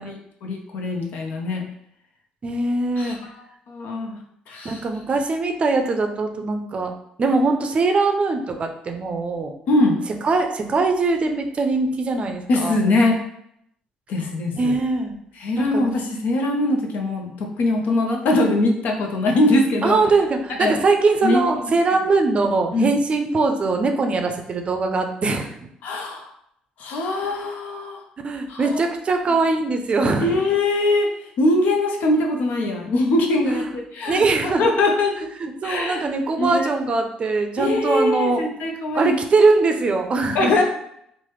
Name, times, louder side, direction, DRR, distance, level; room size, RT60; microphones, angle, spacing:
voice 1, 0.0-1.7 3.0-4.2 4.5-4.8 9.7-10.0 12.5-13.2 14.1-14.8 15.4-20.0 20.6-20.7 21.2-21.6 22.7-22.9 25.8-26.3 26.8-28.0 28.5-28.8 30.2-31.1 31.4-35.1 35.6-36.0 36.4-36.7 37.6-39.2 40.3-40.6, left 2 dB, 70° left, 2 dB, 0.6 m, -22 dB
voice 2, 2.4-3.2 4.6-9.5 10.2-12.8 14.5-15.1 15.6-15.9 19.8-25.5 28.2-30.4 33.4-33.7 34.1-34.7 35.4-38.4 38.9-40.5, right 3 dB, 40° right, 4 dB, 0.5 m, -21 dB
3.2 x 2.1 x 3.0 m, 0.73 s
supercardioid pair, 70°, 3 cm